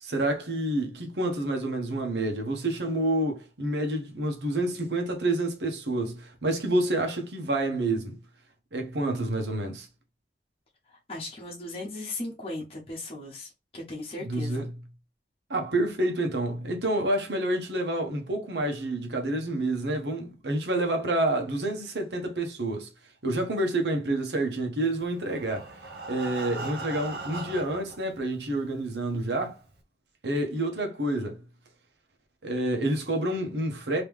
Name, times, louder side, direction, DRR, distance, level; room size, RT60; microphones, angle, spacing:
voice 1, 0.0-8.2 8.7-9.9 14.2-14.7 15.5-22.9 23.2-25.8 26.1-29.6 30.2-31.4 32.4-34.0, right 1 dB, 80° right, 1.1 m, -28 dB
voice 2, 11.1-13.5 13.7-14.7, left 2 dB, 35° left, 1.1 m, -37 dB
Breathing, 25.0-28.0 28.7-28.8 29.2-29.3 29.7-29.8, right 3 dB, 65° right, 0.8 m, -38 dB
3.1 x 3.0 x 3.5 m
head